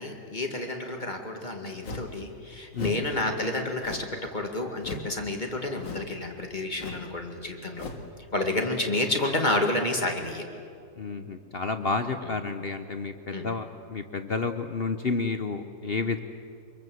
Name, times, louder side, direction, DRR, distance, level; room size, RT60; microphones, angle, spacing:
voice 1, 0.0-7.9 8.3-10.5 12.2-12.4 13.3-13.6, left 2 dB, 25° left, 3 dB, 2.0 m, -30 dB
sound 1, 1.8-2.2 2.7-3.1 3.8-4.2 4.8-5.2 5.8-6.2 6.8-7.1 7.7-8.1, left 3 dB, 90° left, 2.6 m, -38 dB
voice 2, 11.0-16.2, left 4 dB, 50° left, 8 dB, 0.8 m, -30 dB
25.0 x 23.0 x 7.8 m, 2.4 s
omnidirectional pair, 1.9 m